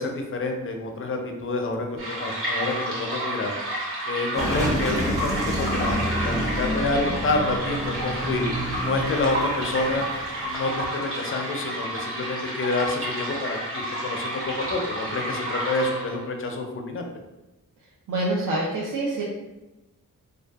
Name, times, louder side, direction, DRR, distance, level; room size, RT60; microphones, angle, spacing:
voice 1, 0.0-3.5 4.1-8.5 8.8-10.1 10.4-17.1, left 2 dB, 40° left, 3 dB, 0.4 m, -28 dB
sound 1, 2.0-16.3, right 1 dB, 40° right, 0.9 m, -31 dB
Car passing by / Engine, 4.4-10.9, equal, 10° right, 0.5 m, -29 dB
voice 2, 18.1-19.2, right 2 dB, 70° right, -5 dB, 0.6 m, -26 dB
2.6 x 2.2 x 2.3 m, 1.0 s
wide cardioid pair, 95°, 33 cm